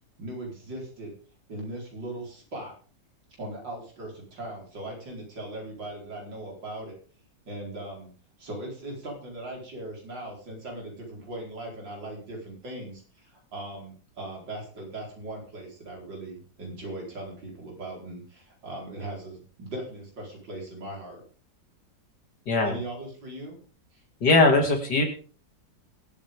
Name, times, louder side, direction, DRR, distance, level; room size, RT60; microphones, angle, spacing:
voice 1, 0.2-1.1 1.5-2.7 3.4-7.0 7.5-8.1 8.4-21.2 22.6-23.6 23.9-24.0, right 1 dB, 85° right, -1 dB, 5.2 m, -39 dB
voice 2, 24.2-25.0, left 3 dB, 65° left, 3 dB, 3.2 m, -20 dB
22.0 x 9.1 x 3.7 m, 0.40 s
omnidirectional pair, 1.9 m